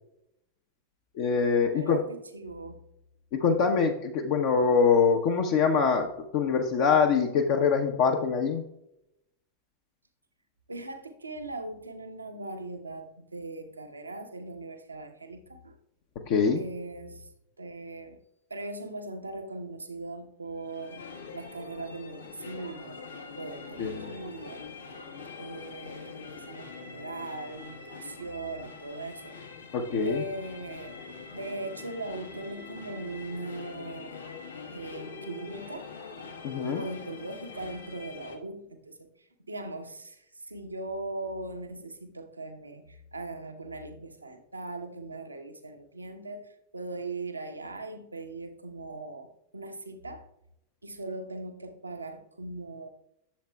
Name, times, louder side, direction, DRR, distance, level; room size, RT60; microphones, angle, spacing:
voice 1, 1.1-2.1 3.3-8.6 16.3-16.6 23.8-24.1 29.7-30.2 36.4-36.8, left 5 dB, 50° left, 3 dB, 0.7 m, -24 dB
voice 2, 1.7-2.8 10.7-15.8 16.6-17.3 17.6-18.2 18.5-21.0 21.3-23.0 23.4-24.8 25.3-29.4 30.0-31.0 31.3-34.3 34.7-36.0 36.7-50.3 50.8-52.9, right 2 dB, 80° right, 6 dB, 0.9 m, -40 dB
sound 1, 20.6-38.4, left 5 dB, 75° left, 1.2 m, -44 dB
11.5 x 7.3 x 2.3 m, 0.80 s
figure-of-eight pair, 90°, 0 cm